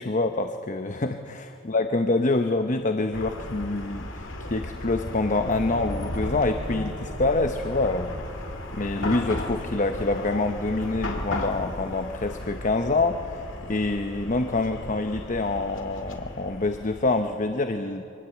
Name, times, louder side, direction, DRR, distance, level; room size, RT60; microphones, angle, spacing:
voice 1, 0.0-8.1 8.7-18.0, left 2 dB, 40° left, 7 dB, 0.9 m, -26 dB
Chatter / Car passing by / Traffic noise roadway noise, 3.1-17.4, left 1 dB, 85° left, 2.6 m, -35 dB
25.0 x 19.5 x 8.4 m, 2.7 s
head